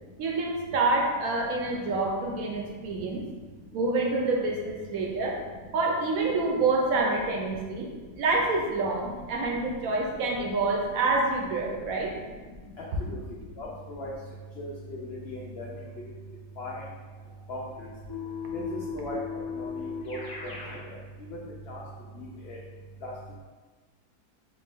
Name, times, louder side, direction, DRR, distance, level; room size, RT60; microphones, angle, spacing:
voice 1, 0.2-3.2 3.7-5.4 5.7-7.9 8.1-12.1, right 3 dB, 70° right, 0 dB, 1.0 m, -27 dB
voice 2, 13.6-14.1 14.6-14.7 15.1-15.7 16.6-16.8 17.5-17.6 18.5-18.6 18.9-19.2 19.6-20.2 20.4-20.5 21.7-21.8 22.2-22.6 23.0-23.1, left 1 dB, 90° left, -4 dB, 0.5 m, -37 dB
Keyboard (musical), 18.1-20.8, left 6 dB, 25° left, 0.4 m, -36 dB
3.5 x 2.5 x 3.3 m, 1.4 s
omnidirectional pair, 1.7 m